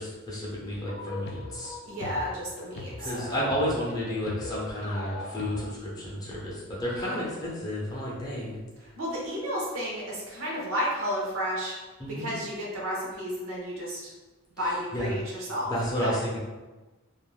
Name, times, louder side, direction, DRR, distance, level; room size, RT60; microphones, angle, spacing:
voice 1, 0.0-1.8 3.0-8.6 12.0-12.3 14.6-15.1 15.6-16.4, equal, 20° left, -6 dB, 0.6 m, -31 dB
sound 1, 0.7-5.7, left 3 dB, 50° left, 0.3 m, -40 dB
voice 2, 1.8-3.4 7.0-7.1 9.0-11.8 12.1-14.1 14.6-15.7 16.0-16.2, equal, 70° right, -4 dB, 0.8 m, -32 dB
2.4 x 2.1 x 3.2 m, 1.2 s
head